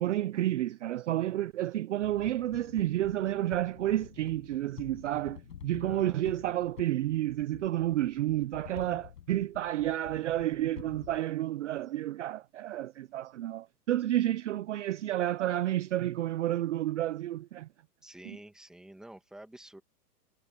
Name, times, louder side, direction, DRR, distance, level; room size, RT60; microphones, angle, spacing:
voice 1, 0.0-17.7 18.2-18.4, right 13 dB, 50° right, 0.5 m, -30 dB
sound 1, 2.0-11.2, left 9 dB, 80° left, 7.4 m, -49 dB
voice 2, 5.8-6.2 18.0-19.8, right 1 dB, ahead, 1.8 m, -49 dB
hypercardioid pair, 165°, 48 cm